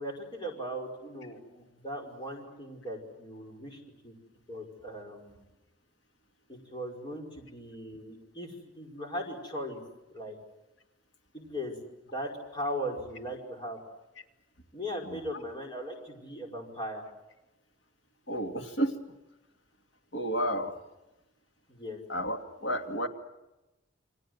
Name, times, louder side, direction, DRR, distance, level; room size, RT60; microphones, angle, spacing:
voice 1, 0.0-4.1 4.5-5.4 6.5-9.8 10.1-10.4 11.3-11.8 12.1-13.8 14.7-17.0 21.7-22.0, equal, 25° left, 1 dB, 5.3 m, -38 dB
voice 2, 18.3-19.0 20.1-20.7 22.1-23.1, equal, 65° left, 5 dB, 2.5 m, -31 dB
29.5 x 24.5 x 7.9 m, 1.0 s
head